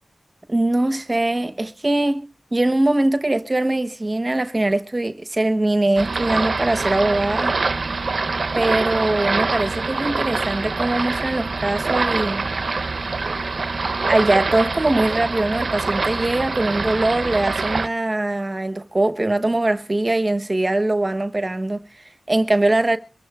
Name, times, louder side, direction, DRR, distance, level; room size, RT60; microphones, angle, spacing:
voice 1, 0.5-7.5 8.5-12.5 14.1-23.0, right 2 dB, 35° right, 1.1 m, -22 dB
sound 1, 6.0-17.9, right 3 dB, 70° right, 0.7 m, -24 dB
23.5 x 15.0 x 2.4 m
wide cardioid pair, 55°, 0 cm